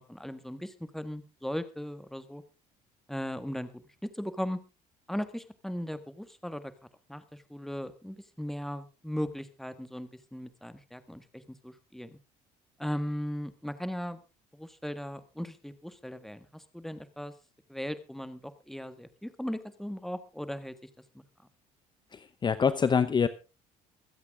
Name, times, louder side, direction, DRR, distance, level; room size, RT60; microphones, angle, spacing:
voice 1, 0.0-2.4 3.1-3.7 4.0-4.6 5.1-6.7 7.1-12.2 12.8-14.2 14.5-17.3 17.7-20.7 21.1-21.2, equal, ahead, 12 dB, 1.5 m, -37 dB
voice 2, 22.1-23.3, left 6 dB, 30° left, 13 dB, 0.8 m, -25 dB
24.0 x 8.3 x 3.6 m, 0.31 s
cardioid pair, 100°, 16 cm